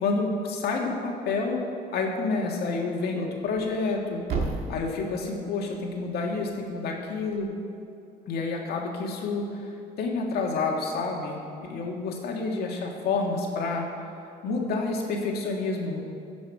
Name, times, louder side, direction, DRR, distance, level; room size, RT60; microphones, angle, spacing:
voice 1, 0.0-1.6 1.9-4.2 4.7-7.5 8.3-9.7 10.0-13.9 14.4-16.0, left 3 dB, 70° left, 0 dB, 1.8 m, -29 dB
Thump thud, 3.4-7.5, right 3 dB, 70° right, 1.8 m, -37 dB
16.5 x 6.3 x 4.8 m, 2.6 s
cardioid pair, 110°, 17 cm